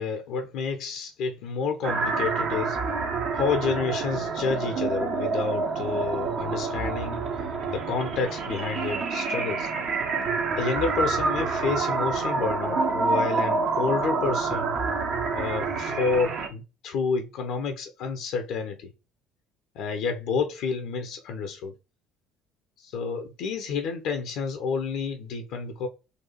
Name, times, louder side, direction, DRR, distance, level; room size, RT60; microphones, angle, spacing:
voice 1, 0.0-2.8 3.3-7.4 7.7-9.7 10.6-14.8 15.3-18.9 19.7-21.7 22.8-25.9, left 5 dB, 60° left, 0.5 m, -29 dB
sound 1, 1.8-16.5, right 4 dB, 55° right, 0.8 m, -27 dB
3.9 x 2.4 x 2.7 m
figure-of-eight pair, 55°, 0 cm